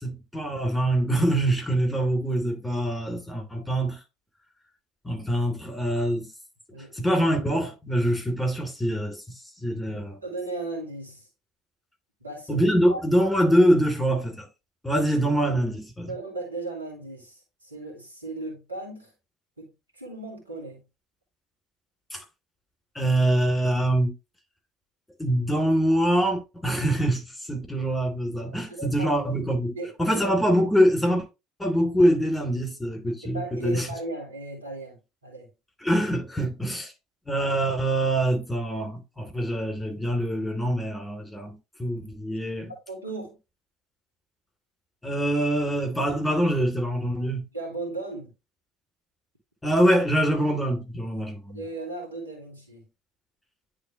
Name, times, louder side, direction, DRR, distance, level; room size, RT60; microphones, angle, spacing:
voice 1, 0.0-4.0 5.0-6.3 6.9-9.2 9.6-10.2 12.5-14.5 14.8-16.1 22.1-22.2 22.9-24.1 25.2-27.2 27.5-31.2 31.6-33.9 35.8-36.9 37.3-42.7 45.0-47.4 49.6-51.6, right 1 dB, 5° left, 2.9 m, -24 dB
voice 2, 6.7-7.2 9.9-11.3 12.2-13.0 16.1-19.1 19.6-20.8 28.7-29.1 29.7-30.2 33.2-35.5 42.9-43.4 47.5-48.3 51.5-52.8, right 2 dB, 90° right, 2.1 m, -36 dB
9.9 x 3.6 x 3.0 m
figure-of-eight pair, 65°, 0 cm